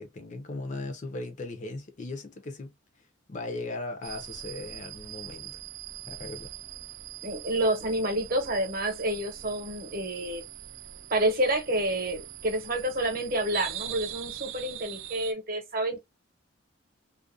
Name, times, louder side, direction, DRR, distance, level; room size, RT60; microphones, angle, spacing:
voice 1, 0.0-2.7 3.3-5.6 6.1-6.5, left 2 dB, 35° left, 0.5 m, -38 dB
sound 1, 4.0-15.3, right 11 dB, 80° right, 0.5 m, -42 dB
voice 2, 7.2-10.4 11.1-16.0, right 1 dB, 45° right, 0.8 m, -29 dB
2.4 x 2.1 x 2.5 m
head